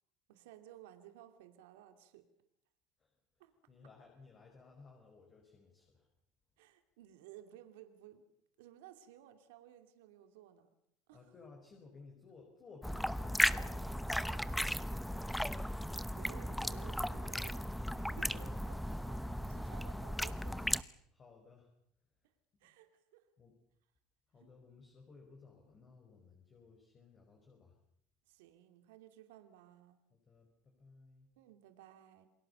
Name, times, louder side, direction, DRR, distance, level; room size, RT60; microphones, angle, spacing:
voice 1, 0.3-2.2 3.4-3.5 6.6-8.2 8.6-10.7 11.1-11.2 14.2-14.7 16.0-17.6 17.9-20.7 22.6-23.2 24.4-24.5 28.3-30.0 31.4-32.3, right 12 dB, 90° right, 7 dB, 2.6 m, -57 dB
voice 2, 3.0-6.1 11.1-14.2 18.4-18.8 21.1-21.7 22.6-22.7 23.4-23.6 24.3-27.8 30.1-31.3, left 4 dB, 30° left, 2 dB, 5.2 m, -59 dB
sound 1, 12.8-20.8, equal, ahead, 0.9 m, -36 dB
28.5 x 21.0 x 6.9 m, 0.72 s
supercardioid pair, 125°, 0 cm